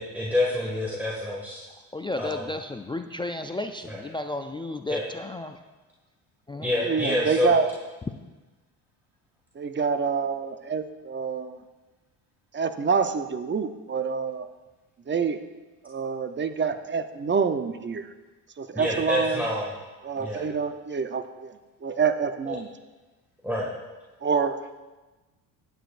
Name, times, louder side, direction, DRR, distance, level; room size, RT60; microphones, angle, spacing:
voice 1, 0.0-1.6 2.2-2.5 3.9-4.0 4.9-5.0 6.6-7.6 18.7-19.8 20.2-20.5 22.5-22.6 23.4-23.7, left 1 dB, 5° right, -5 dB, 1.9 m, -27 dB
voice 2, 1.9-5.6 6.5-6.7, left 2 dB, 10° left, 7 dB, 0.3 m, -33 dB
voice 3, 6.8-7.7 9.6-11.5 12.5-14.5 15.1-15.4 15.8-18.1 18.6-19.4 20.0-21.5 21.8-22.7 24.2-24.6, right 5 dB, 25° right, 9 dB, 0.7 m, -27 dB
15.0 x 9.2 x 2.5 m, 1.2 s
supercardioid pair, 80°, 46 cm